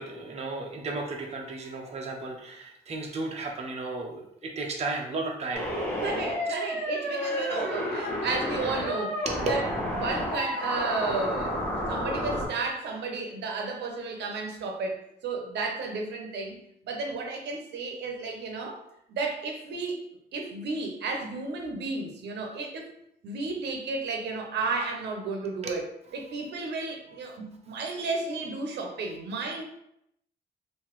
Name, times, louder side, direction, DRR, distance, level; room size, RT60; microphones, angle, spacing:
voice 1, 0.0-5.7 9.3-9.4 25.6-25.7, right 3 dB, 35° right, 0 dB, 0.7 m, -34 dB
sound 1, 5.5-12.5, equal, 10° left, 1.2 m, -30 dB
voice 2, 6.0-9.6 9.9-11.6 11.9-15.0 15.2-16.6 16.8-18.8 19.1-20.0 20.3-22.9 23.2-25.8 26.1-29.6, right 3 dB, 80° right, 2 dB, 0.7 m, -33 dB
3.8 x 2.6 x 3.0 m, 0.76 s
cardioid pair, 110°, 18 cm